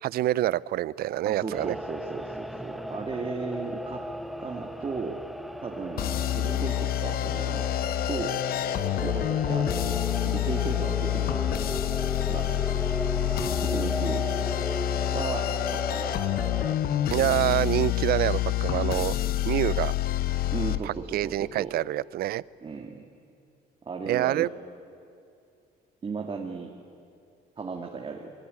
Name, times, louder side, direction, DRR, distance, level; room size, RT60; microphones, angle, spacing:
voice 1, 0.0-1.8 17.1-19.2 19.4-19.9 20.8-22.4 24.1-24.5, right 14 dB, 65° right, 21 dB, 0.5 m, -26 dB
voice 2, 1.3-4.0 4.4-5.2 5.6-7.7 8.1-8.4 8.9-10.0 10.3-11.4 12.3-12.8 13.6-14.5 15.1-16.2 20.5-21.7 22.6-23.1 23.9-24.5 26.0-26.7 27.6-28.3, right 4 dB, 30° right, 1 dB, 2.1 m, -35 dB
sound 1, 1.5-16.8, equal, ahead, 0.9 m, -36 dB
sound 2, 6.0-20.8, left 13 dB, 60° left, 1.0 m, -27 dB
25.5 x 21.5 x 9.6 m, 2.4 s
cardioid pair, 110°, 17 cm